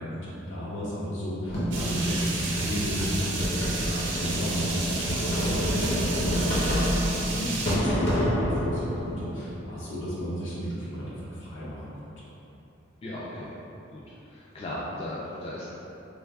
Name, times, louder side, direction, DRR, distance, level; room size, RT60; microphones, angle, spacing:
voice 1, 0.1-11.8, equal, 75° left, -8 dB, 1.0 m, -34 dB
sound 1, 1.5-9.5, equal, 50° left, 0.8 m, -28 dB
sound 2, 1.7-7.8, right 3 dB, 65° right, 0.5 m, -33 dB
voice 2, 13.0-13.5 13.9-15.7, left 1 dB, 30° left, -7 dB, 0.3 m, -37 dB
3.2 x 3.2 x 2.3 m, 3.0 s
head